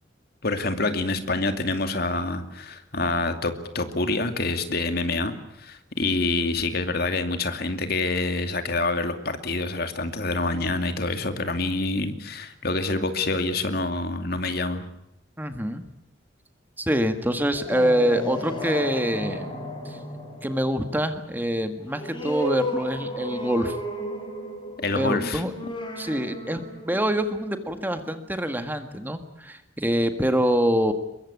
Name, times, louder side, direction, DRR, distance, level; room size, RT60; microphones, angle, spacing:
voice 1, 0.4-14.9 24.8-25.4, left 2 dB, 55° left, 8 dB, 2.5 m, -27 dB
voice 2, 15.4-15.8 16.8-19.5 19.9-20.0 20.4-23.8 24.9-25.5 26.0-30.9, equal, 10° right, 8 dB, 1.8 m, -25 dB
sound 1, 17.5-28.6, equal, 25° left, 7.6 m, -34 dB
23.0 x 22.5 x 8.6 m, 0.83 s
head